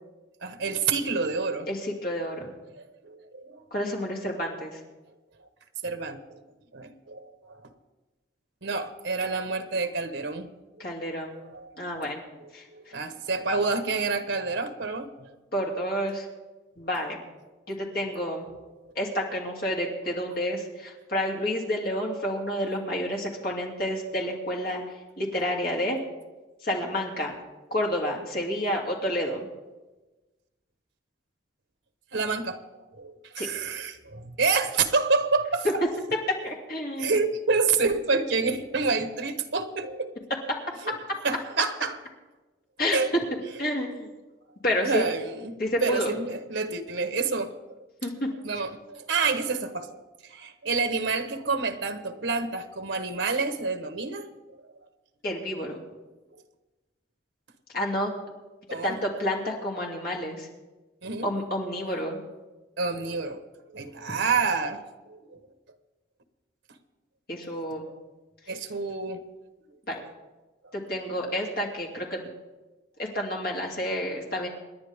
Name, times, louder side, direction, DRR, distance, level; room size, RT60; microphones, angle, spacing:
voice 1, 0.4-1.7 2.7-3.6 5.8-6.2 6.7-7.7 8.6-10.5 11.1-11.2 11.5-12.1 12.4-15.3 32.1-32.6 32.9-35.7 37.0-40.2 40.8-41.0 41.2-41.9 42.9-43.1 44.0-44.1 44.8-47.8 48.4-50.0 50.2-54.3 58.7-59.0 61.0-61.3 62.8-63.4 63.7-64.8 65.1-65.4 67.6-67.8 68.5-69.2, right 4 dB, 80° right, 9 dB, 1.2 m, -28 dB
voice 2, 1.7-2.5 3.7-4.8 10.8-11.4 11.8-12.2 12.5-13.0 15.5-16.3 16.8-17.2 17.7-18.5 18.9-24.8 25.2-26.0 26.6-27.3 27.7-29.5 33.4-33.5 36.4-37.1 40.5-40.6 42.8-43.0 43.6-44.1 44.6-45.1 45.6-46.1 48.0-48.3 55.2-55.8 57.7-58.1 58.8-60.5 61.2-62.2 67.3-67.9 69.9-70.0 70.7-72.3 73.0-74.5, equal, 50° left, -1 dB, 2.9 m, -29 dB
27.5 x 10.5 x 3.6 m, 1.2 s
head